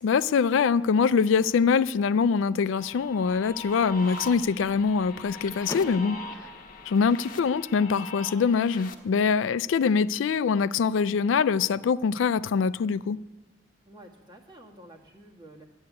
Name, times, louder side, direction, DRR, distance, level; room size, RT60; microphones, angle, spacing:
voice 1, 0.0-6.2 6.9-13.2, left 5 dB, 75° left, 0.3 m, -24 dB
sound 1, 2.7-8.9, left 2 dB, 45° left, 1.2 m, -42 dB
Car / Door, 5.6-7.6, left 2 dB, 15° left, 0.8 m, -42 dB
voice 2, 13.8-15.6, right 1 dB, 25° right, 1.6 m, -50 dB
11.5 x 7.9 x 9.4 m
head